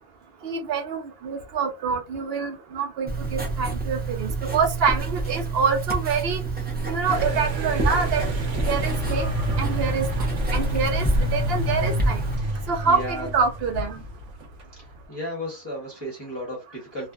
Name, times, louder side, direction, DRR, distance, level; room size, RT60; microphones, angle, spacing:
voice 1, 0.4-6.4 6.9-8.2 8.7-9.3 9.6-12.2 12.7-14.0, right 5 dB, 60° right, 5 dB, 0.8 m, -26 dB
Writing, 3.1-12.4, right 3 dB, 15° right, 0.4 m, -28 dB
sound 1, 7.0-14.6, left 1 dB, 85° right, 1.0 m, -29 dB
voice 2, 12.4-13.3 14.0-14.1 14.7-17.1, equal, 25° left, -4 dB, 0.8 m, -35 dB
2.5 x 2.4 x 2.2 m, 0.27 s
omnidirectional pair, 1.2 m